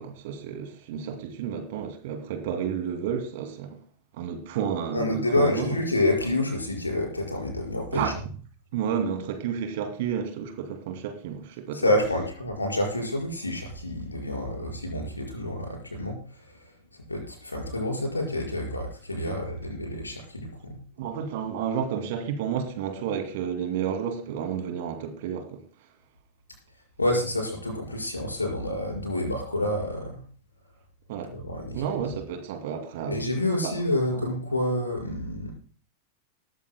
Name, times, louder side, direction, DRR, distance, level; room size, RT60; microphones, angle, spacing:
voice 1, 0.0-3.8 4.2-5.8 7.9-8.2 8.7-11.8 19.3-19.4 21.0-25.6 31.1-31.3 31.7-33.2 33.6-33.7 34.1-34.2, right 8 dB, 50° right, 2.5 m, -31 dB
voice 2, 4.9-8.1 11.7-16.6 17.1-20.8 27.0-30.2 31.3-31.8 33.1-35.5, left 1 dB, 80° left, 5.2 m, -28 dB
19.5 x 14.0 x 2.2 m
figure-of-eight pair, 90°, 0 cm